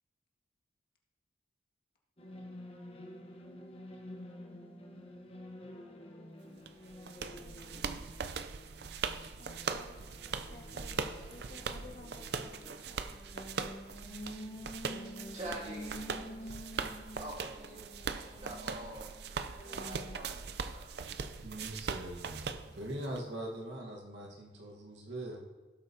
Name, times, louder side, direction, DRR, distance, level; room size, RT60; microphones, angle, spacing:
sound 1, 2.2-20.2, equal, 30° left, 1.0 m, -49 dB
sound 2, 6.7-23.2, right 5 dB, 65° right, 0.5 m, -40 dB
voice 1, 9.4-10.0 10.4-13.3, left 2 dB, 55° left, -2 dB, 2.0 m, -54 dB
voice 2, 15.3-16.6 17.2-17.8 18.1-19.1 19.6-20.9, right 1 dB, 35° right, -4 dB, 2.3 m, -46 dB
voice 3, 21.4-25.4, right 1 dB, 85° right, -1 dB, 1.4 m, -42 dB
17.0 x 7.9 x 2.8 m, 1.3 s
head